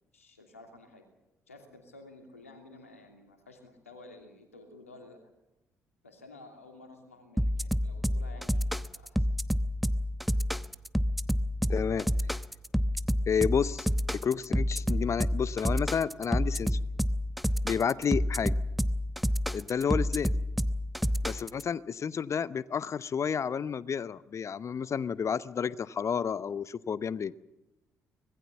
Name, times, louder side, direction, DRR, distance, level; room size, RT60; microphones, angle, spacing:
voice 1, 0.1-1.1 1.5-5.2 6.0-9.3, left 2 dB, 90° left, 4 dB, 2.8 m, -52 dB
sound 1, 7.4-21.6, equal, ahead, 0.9 m, -28 dB
voice 2, 11.7-12.1 13.3-13.9 14.2-16.8 17.6-18.6 19.5-20.3 21.2-27.3, left 7 dB, 40° left, 18 dB, 0.9 m, -30 dB
25.0 x 20.0 x 7.2 m, 0.97 s
figure-of-eight pair, 45°, 7 cm